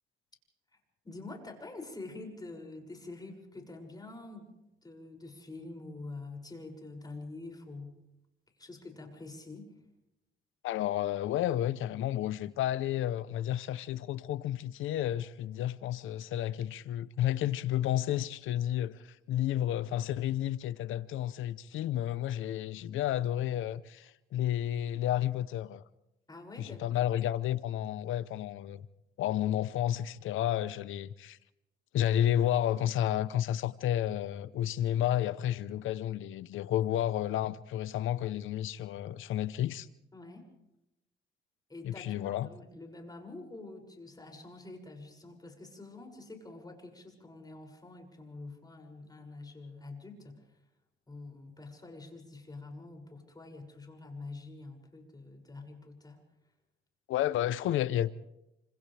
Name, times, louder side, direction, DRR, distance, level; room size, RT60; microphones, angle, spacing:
voice 1, 1.0-4.5 4.8-8.0 8.6-9.7 26.3-27.0 40.1-40.5 41.7-50.6 51.1-56.2, left 2 dB, 20° left, 6.6 m, -46 dB
voice 2, 10.6-25.8 26.6-28.9 29.2-31.4 31.9-39.9 41.8-42.5 57.1-58.1, left 12 dB, 80° left, 0.9 m, -31 dB
29.5 x 26.5 x 3.4 m
cardioid pair, 90°, 20 cm